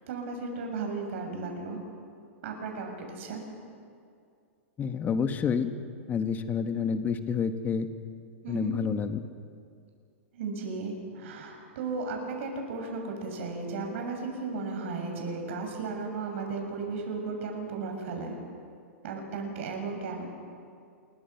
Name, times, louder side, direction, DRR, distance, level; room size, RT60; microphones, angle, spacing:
voice 1, 0.1-1.8 2.4-3.4 8.4-8.8 10.3-18.4 19.0-20.3, right 4 dB, 65° right, 2 dB, 6.9 m, -35 dB
voice 2, 4.8-5.7 6.1-7.9 8.5-9.2, left 6 dB, 25° left, 8 dB, 1.7 m, -28 dB
29.0 x 23.0 x 6.0 m, 2.3 s
hypercardioid pair, 120°, 7 cm